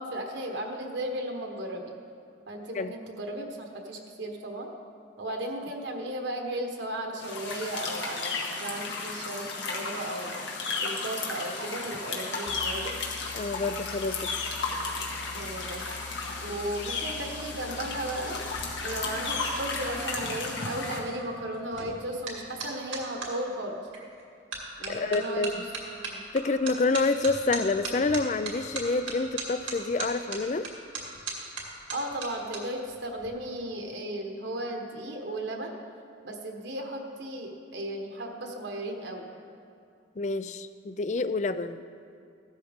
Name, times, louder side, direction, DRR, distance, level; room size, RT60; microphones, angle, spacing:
voice 1, 0.0-1.9 2.5-4.7 5.2-10.3 10.8-12.9 15.3-15.9 16.4-18.5 18.8-23.8 24.8-25.6 26.1-26.2 31.9-35.7 36.2-39.3, right 1 dB, 65° right, 2 dB, 1.3 m, -35 dB
sound 1, 7.2-21.0, left 3 dB, 75° left, 1.8 m, -34 dB
sound 2, 12.5-19.9, left 4 dB, 90° left, 0.7 m, -46 dB
voice 2, 13.3-14.5 24.9-25.6 26.3-30.7 40.2-41.8, left 3 dB, 40° left, 13 dB, 0.4 m, -28 dB
sound 3, 18.5-23.3 23.9-24.2 24.5-32.6 32.9-33.3, right 4 dB, 90° right, 2.3 m, -39 dB
15.0 x 12.5 x 3.6 m, 2.4 s
head